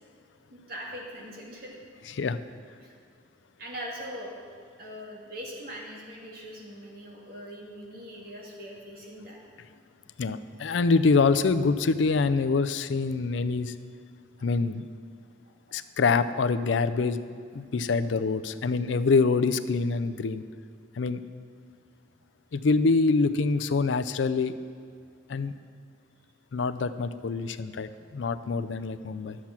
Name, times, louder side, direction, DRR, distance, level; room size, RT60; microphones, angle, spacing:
voice 1, 0.5-1.7 2.8-2.9 3.6-4.3 4.8-9.4, equal, 55° right, -2 dB, 2.1 m, -41 dB
voice 2, 2.1-2.4 10.2-13.7 14.4-14.8 15.7-17.2 17.5-20.4 20.9-21.2 22.5-24.5 25.3-25.5 26.5-29.4, left 4 dB, 80° left, 12 dB, 0.5 m, -25 dB
11.5 x 7.3 x 5.9 m, 2.2 s
head